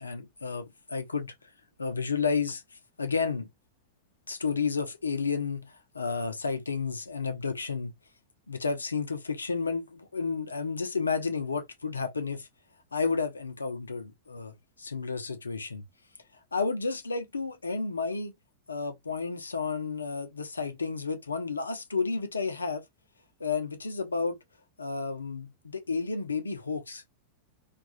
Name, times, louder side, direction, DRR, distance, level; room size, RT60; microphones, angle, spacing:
voice 1, 0.0-1.3 1.8-2.6 3.0-3.5 4.3-7.9 8.5-12.5 12.9-15.8 16.5-18.3 18.7-22.8 23.4-24.4 24.8-27.1, left 4 dB, 75° left, 0.5 m, -31 dB
2.3 x 2.3 x 2.7 m
figure-of-eight pair, 90°, 0 cm